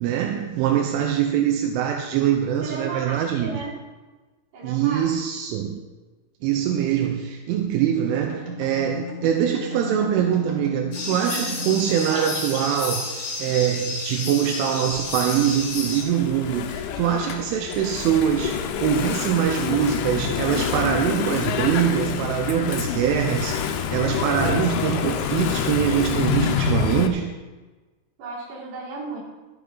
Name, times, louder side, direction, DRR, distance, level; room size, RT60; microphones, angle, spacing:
voice 1, 0.0-3.6 4.6-5.8 6.4-13.1 13.4-27.3, right 9 dB, 85° right, 3 dB, 3.1 m, -23 dB
voice 2, 2.6-3.7 4.5-5.1 11.9-12.3 28.2-29.2, right 3 dB, 55° right, -7 dB, 4.8 m, -34 dB
sound 1, 7.9-12.8, left 2 dB, 40° right, 1.2 m, -35 dB
sound 2, 10.9-16.0, left 3 dB, 55° left, 3.5 m, -31 dB
Engine / Mechanisms, 14.9-27.1, left 9 dB, 85° left, 3.0 m, -27 dB
12.5 x 8.5 x 4.2 m, 1.3 s
omnidirectional pair, 5.7 m